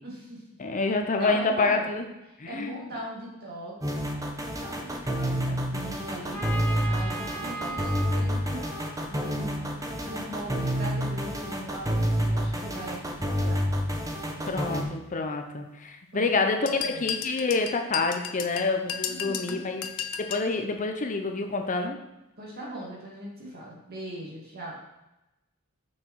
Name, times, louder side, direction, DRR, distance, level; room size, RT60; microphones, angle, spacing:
voice 1, 0.0-0.4 1.2-1.9 2.3-3.9 4.6-6.5 6.8-8.7 9.1-13.7 14.3-14.6 16.1-17.2 19.0-19.6 22.4-24.7, right 1 dB, 50° right, -3 dB, 2.5 m, -40 dB
voice 2, 0.6-2.0 2.4-2.8 6.7-6.8 14.5-19.8 20.2-22.0, left 3 dB, 35° left, 5 dB, 0.6 m, -27 dB
sound 1, 3.8-14.8, equal, 15° right, 1.0 m, -28 dB
Trumpet, 6.3-10.1, right 2 dB, 10° left, 1.4 m, -39 dB
sound 2, 16.7-20.5, left 8 dB, 70° left, 0.7 m, -34 dB
6.3 x 5.9 x 4.6 m, 0.96 s
head